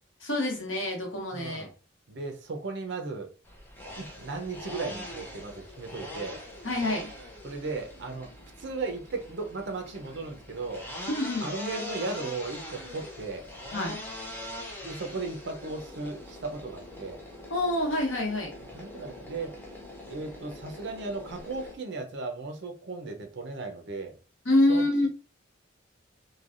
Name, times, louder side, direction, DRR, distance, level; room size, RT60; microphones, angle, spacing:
voice 1, 0.2-1.7 6.6-7.1 11.1-11.5 13.7-13.9 17.5-18.5 24.4-25.1, left 1 dB, 70° left, 1.1 m, -26 dB
voice 2, 1.3-1.7 2.1-3.3 3.9-6.4 7.4-8.3 8.6-10.9 11.4-13.5 14.8-17.2 18.7-19.6 20.1-24.2 24.7-25.1, right 3 dB, 60° right, 0.6 m, -36 dB
sound 1, 3.5-21.8, left 1 dB, 10° left, 0.6 m, -43 dB
3.2 x 2.3 x 2.4 m
head